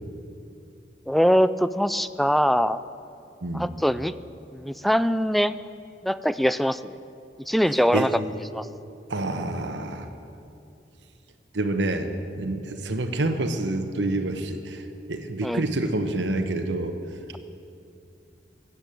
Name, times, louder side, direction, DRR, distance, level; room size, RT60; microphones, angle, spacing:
voice 1, 1.1-2.8 3.5-4.1 4.5-5.6 6.0-6.9 7.5-8.2 8.5-8.7 15.4-15.6, equal, ahead, 14 dB, 0.3 m, -22 dB
voice 2, 3.4-3.7 7.9-8.3 9.1-10.1 11.5-12.1 12.4-14.8 15.1-17.0, right 2 dB, 75° right, 6 dB, 1.1 m, -27 dB
15.5 x 8.2 x 9.0 m, 2.6 s
head